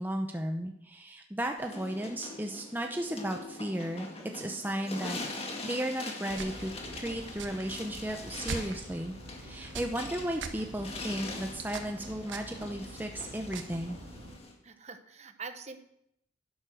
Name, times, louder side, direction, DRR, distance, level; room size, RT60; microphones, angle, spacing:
voice 1, 0.0-14.0, right 1 dB, 10° right, 3 dB, 0.7 m, -35 dB
sound 1, 1.6-14.5, left 2 dB, 30° left, 1.9 m, -43 dB
sound 2, 6.3-14.4, right 3 dB, 85° right, 1.4 m, -43 dB
voice 2, 14.6-15.8, right 5 dB, 35° right, 9 dB, 1.0 m, -44 dB
11.5 x 11.0 x 6.3 m, 0.76 s
head